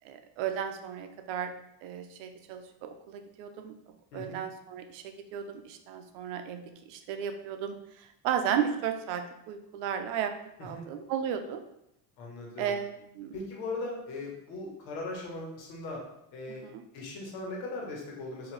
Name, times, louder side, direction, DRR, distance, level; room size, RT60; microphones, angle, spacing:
voice 1, 0.0-1.5 1.8-3.8 4.1-10.3 10.6-11.6 12.6-13.3 16.6-16.8, right 8 dB, 80° right, 7 dB, 0.6 m, -34 dB
voice 2, 4.1-4.4 10.6-10.9 12.2-12.8 13.3-16.0 16.3-16.6 16.9-18.5, left 2 dB, 90° left, -2 dB, 1.4 m, -39 dB
3.9 x 2.8 x 3.2 m, 0.80 s
cardioid pair, 125°, 47 cm